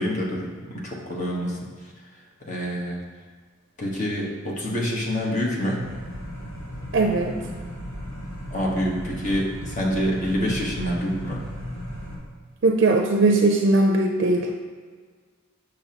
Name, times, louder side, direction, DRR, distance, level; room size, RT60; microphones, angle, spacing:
voice 1, 0.0-1.6 2.4-3.0 3.8-5.8 8.5-11.4, equal, 40° left, -3 dB, 1.2 m, -26 dB
sound 1, 5.8-12.2, equal, 70° left, 1.8 m, -35 dB
voice 2, 6.9-7.3 12.6-14.5, right 2 dB, 60° right, 2 dB, 0.5 m, -19 dB
6.9 x 6.3 x 2.9 m, 1.5 s
head